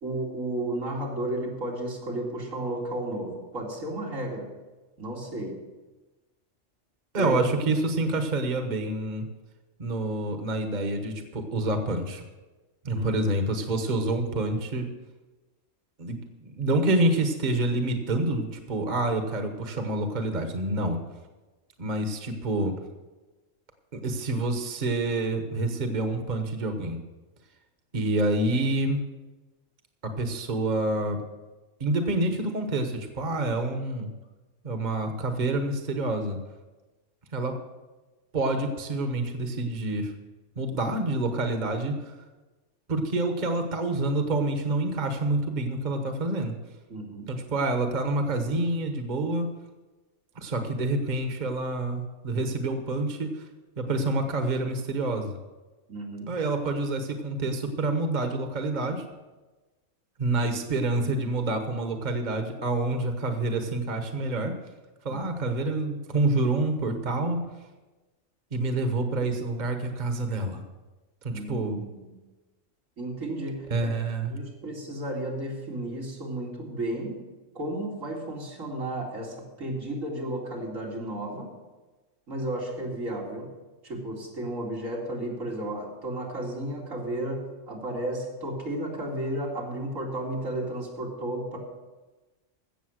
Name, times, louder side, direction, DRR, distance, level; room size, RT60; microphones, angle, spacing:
voice 1, 0.0-4.5 5.0-5.6 7.1-7.4 12.9-13.1 46.9-47.3 55.9-56.4 65.1-65.2 71.3-72.2 73.0-73.9 74.3-77.2 77.5-81.5 82.3-83.5 83.8-91.6, right 1 dB, 90° right, -2 dB, 3.0 m, -33 dB
voice 2, 7.1-9.2 9.8-12.2 12.8-14.9 16.0-16.2 16.4-21.0 21.8-22.7 23.9-27.0 27.9-29.0 30.0-31.2 31.8-34.1 34.6-36.4 37.3-37.5 38.3-40.1 40.6-42.0 42.9-46.5 47.3-49.5 50.3-53.5 53.8-55.4 56.3-59.0 60.2-64.5 65.0-67.4 68.5-70.6 71.2-71.8 73.7-74.4, right 2 dB, 35° right, 6 dB, 1.2 m, -27 dB
16.0 x 7.0 x 6.4 m, 1.2 s
omnidirectional pair, 1.3 m